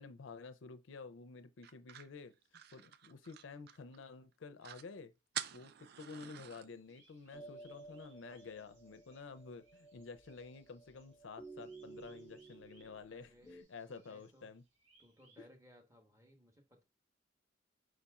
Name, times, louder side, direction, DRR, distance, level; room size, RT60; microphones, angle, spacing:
voice 1, 0.0-14.6, left 4 dB, 80° left, 0.5 m, -51 dB
sound 1, 1.6-4.0 4.3-4.4 4.6-4.9 5.3-6.7, right 10 dB, 55° right, 0.3 m, -47 dB
sound 2, 6.5-15.4, right 2 dB, 80° right, 1.9 m, -71 dB
sound 3, 7.3-13.6, right 3 dB, 10° left, 0.4 m, -55 dB
voice 2, 13.1-13.6 13.9-14.5 15.0-16.8, equal, 15° right, 1.1 m, -63 dB
4.9 x 4.1 x 2.3 m
head